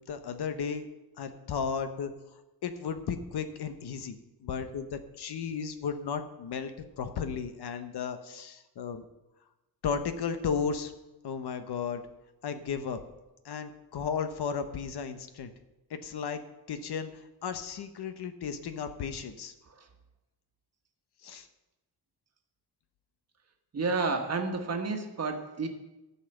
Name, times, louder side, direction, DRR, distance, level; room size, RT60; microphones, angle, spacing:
voice 1, 0.1-0.9 1.2-2.1 2.6-9.0 9.8-10.9 11.2-12.0 12.4-13.0 13.4-15.5 15.9-16.4 16.7-19.5 21.2-21.5, left 6 dB, 70° left, 8 dB, 1.1 m, -34 dB
voice 2, 23.7-25.7, right 4 dB, 40° right, 4 dB, 1.4 m, -31 dB
14.0 x 5.7 x 7.8 m, 1.0 s
wide cardioid pair, 180°, 40 cm